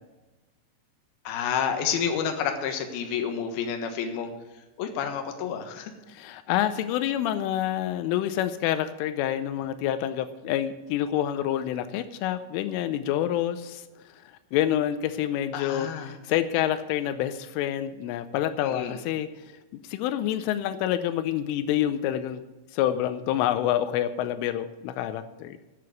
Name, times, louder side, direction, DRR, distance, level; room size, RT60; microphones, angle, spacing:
voice 1, 1.2-4.3 4.8-5.9 15.5-16.1 18.6-19.0, left 7 dB, 65° left, 5 dB, 2.8 m, -29 dB
voice 2, 6.1-13.8 14.5-19.3 19.9-22.4 22.7-25.6, left 11 dB, 85° left, 11 dB, 3.2 m, -27 dB
11.0 x 7.8 x 8.5 m, 1.1 s
omnidirectional pair, 5.7 m